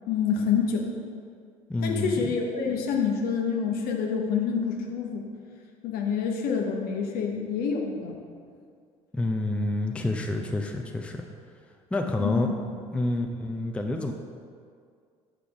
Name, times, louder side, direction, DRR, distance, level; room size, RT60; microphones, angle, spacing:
voice 1, 0.1-0.8 1.8-5.2 5.8-8.2 12.2-12.5, left 6 dB, 60° left, 1 dB, 0.9 m, -27 dB
voice 2, 1.7-2.3 9.1-11.2 11.9-12.5 12.9-14.1, left 2 dB, 5° left, 2 dB, 0.5 m, -28 dB
6.9 x 3.7 x 4.7 m, 2.2 s
figure-of-eight pair, 55°, 18 cm